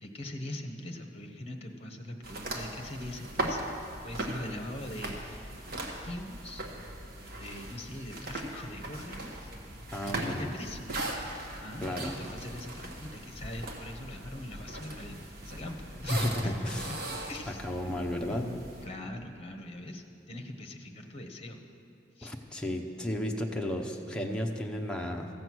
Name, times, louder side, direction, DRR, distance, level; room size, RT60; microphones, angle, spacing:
voice 1, 0.0-3.7 4.0-5.5 5.8-6.6 7.1-9.5 10.2-10.8 11.6-16.1 16.4-16.8 17.3-17.9 18.2-21.6 22.2-22.3, left 1 dB, 35° left, 4 dB, 1.1 m, -42 dB
sound 1, 2.2-18.9, right 1 dB, 55° right, 1.3 m, -39 dB
voice 2, 9.9-10.5 11.8-12.1 16.1-16.9 17.5-18.5 22.2-25.3, left 1 dB, 5° left, 0 dB, 0.8 m, -33 dB
14.5 x 7.8 x 6.2 m, 2.8 s
head